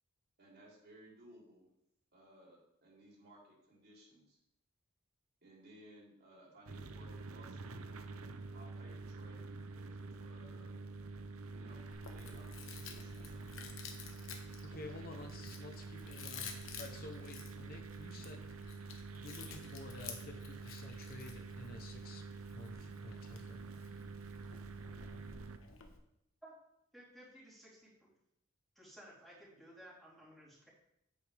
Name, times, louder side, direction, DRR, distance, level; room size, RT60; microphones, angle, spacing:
voice 1, 0.4-1.7 2.1-4.4 5.4-7.8 8.5-10.8 11.5-11.8 12.1-13.6, right 1 dB, 50° right, -3 dB, 3.3 m, -60 dB
sound 1, 6.7-25.6, right 3 dB, 90° right, 0.7 m, -47 dB
Chewing mastication, 11.9-26.0, left 6 dB, 70° left, 1.2 m, -52 dB
voice 2, 14.2-16.5 16.8-18.5 19.2-22.2 22.5-23.7, left 2 dB, 45° left, 5 dB, 0.8 m, -51 dB
voice 3, 26.9-28.1 28.7-30.7, right 1 dB, ahead, -7 dB, 3.4 m, -56 dB
9.3 x 8.6 x 3.4 m, 0.78 s
head